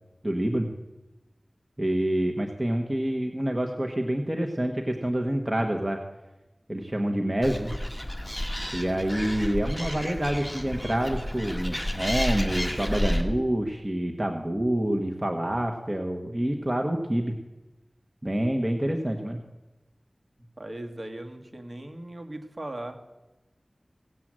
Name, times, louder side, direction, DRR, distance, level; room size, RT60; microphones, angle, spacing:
voice 1, 0.2-0.7 1.8-6.0 6.7-7.7 8.7-17.3 18.2-19.4, right 1 dB, 25° right, 3 dB, 1.2 m, -27 dB
Animal, 7.4-13.2, equal, 15° left, 1.6 m, -31 dB
voice 2, 20.6-23.0, right 1 dB, 50° right, 5 dB, 1.7 m, -38 dB
17.0 x 7.8 x 7.5 m, 1.1 s
wide cardioid pair, 60°, 0 cm